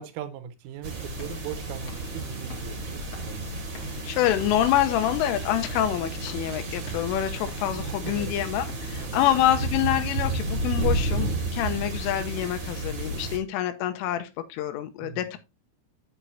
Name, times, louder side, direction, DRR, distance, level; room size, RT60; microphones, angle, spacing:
voice 1, 0.0-3.5 7.9-8.3 9.0-9.3 15.0-15.3, right 9 dB, 80° right, 3.6 m, -39 dB
sound 1, 0.6-10.6, left 4 dB, 40° left, 2.5 m, -50 dB
sound 2, 0.8-13.4, right 2 dB, 40° right, 1.7 m, -32 dB
voice 2, 4.0-15.4, left 12 dB, 80° left, 3.3 m, -26 dB
8.9 x 8.1 x 2.8 m
omnidirectional pair, 5.8 m